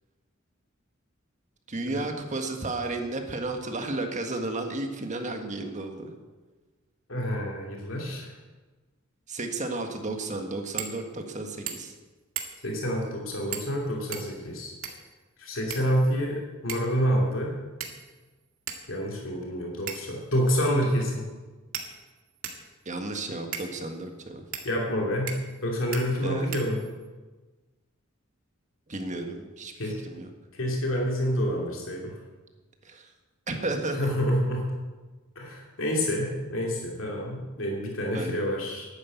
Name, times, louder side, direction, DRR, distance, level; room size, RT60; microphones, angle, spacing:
voice 1, 1.7-6.1 9.3-11.9 22.8-24.4 26.2-26.5 28.9-30.3 32.8-33.1 33.5-34.1 38.1-38.4, right 2 dB, 35° right, 4 dB, 1.6 m, -33 dB
voice 2, 7.1-8.3 12.6-14.7 15.4-17.5 18.9-21.3 24.6-25.3 25.6-26.8 29.8-30.0 30.5-32.1 34.0-34.6 35.4-38.9, equal, 70° left, -1 dB, 2.8 m, -28 dB
sound 1, 10.8-11.0 11.3-11.4 11.7-12.0 12.4-12.7 13.5-13.8 14.1-15.1 15.7-16.3 16.7-17.0 17.8-18.2 18.7-18.8 19.9-20.2 21.0-21.1 21.7-22.7 23.5-23.7 24.5-24.7 25.3-25.6 25.9-26.0 26.5-27.1, right 8 dB, 85° right, 1.9 m, -37 dB
11.5 x 9.8 x 8.3 m, 1.3 s
head